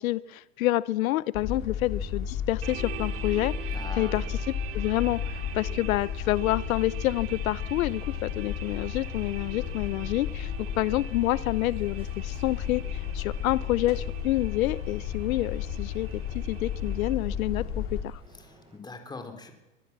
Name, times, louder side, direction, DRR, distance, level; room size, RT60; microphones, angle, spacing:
voice 1, 0.0-10.5 10.8-16.1 16.3-18.2, left 16 dB, 85° left, 19 dB, 0.8 m, -28 dB
sound 1, 1.3-18.0, left 8 dB, 30° left, 3.7 m, -33 dB
sound 2, 2.6-17.1, right 10 dB, 30° right, 2.6 m, -44 dB
voice 2, 3.7-4.3 18.5-19.5, left 3 dB, 10° left, 6 dB, 3.6 m, -41 dB
sound 3, 7.5-18.8, right 1 dB, 15° right, 7.1 m, -55 dB
23.0 x 21.0 x 7.4 m, 1.0 s
supercardioid pair, 135°, 40 cm